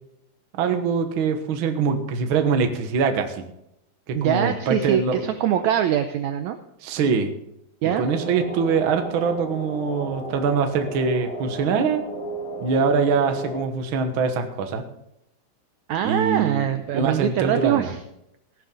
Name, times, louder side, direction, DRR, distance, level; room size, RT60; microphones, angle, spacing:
voice 1, 0.5-3.4 4.1-5.3 6.8-7.3 8.0-12.0 12.6-14.8 16.0-16.7 16.9-17.9, right 5 dB, 60° right, 6 dB, 1.4 m, -23 dB
voice 2, 4.1-6.6 7.8-8.0 15.9-18.0, right 10 dB, 80° right, 9 dB, 1.7 m, -23 dB
sound 1, 7.8-13.6, equal, 45° left, 6.9 m, -34 dB
15.5 x 12.0 x 3.9 m, 0.82 s
omnidirectional pair, 4.0 m